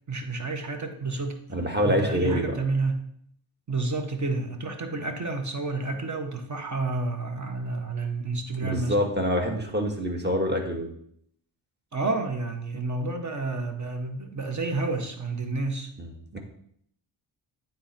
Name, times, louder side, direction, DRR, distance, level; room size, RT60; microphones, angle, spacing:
voice 1, 0.1-1.4 1.8-3.1 3.7-9.1 11.9-15.9, right 3 dB, 40° right, 6 dB, 1.3 m, -30 dB
voice 2, 1.5-2.4 8.6-10.9 16.0-16.4, equal, 20° right, 3 dB, 1.7 m, -26 dB
9.1 x 4.0 x 4.4 m, 0.67 s
cardioid pair, 55°, 46 cm